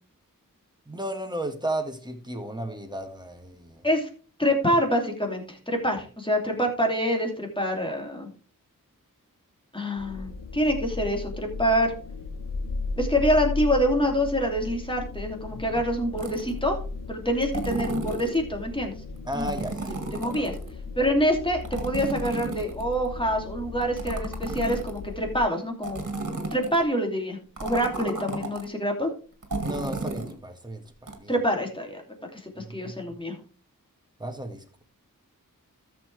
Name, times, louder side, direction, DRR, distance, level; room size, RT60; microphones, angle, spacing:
voice 1, 0.9-3.9 15.5-15.8 19.2-19.9 20.3-20.4 29.6-31.3 32.6-33.2 34.2-34.8, right 1 dB, 10° right, 4 dB, 1.8 m, -34 dB
voice 2, 4.4-8.3 9.7-11.9 13.0-16.8 17.1-18.9 19.3-19.5 20.1-20.5 21.0-26.0 26.5-29.1 31.3-32.0 32.3-33.4, equal, 15° left, 2 dB, 2.8 m, -26 dB
sound 1, 10.0-25.4, left 3 dB, 75° left, 1.2 m, -36 dB
sound 2, 16.2-16.6 17.4-18.4 19.3-20.7 21.6-23.1 23.8-25.1 25.8-26.8 27.6-28.6 29.4-30.3 31.1-31.2, right 2 dB, 60° right, 2.1 m, -33 dB
13.5 x 6.8 x 3.4 m, 0.39 s
wide cardioid pair, 50°, 34 cm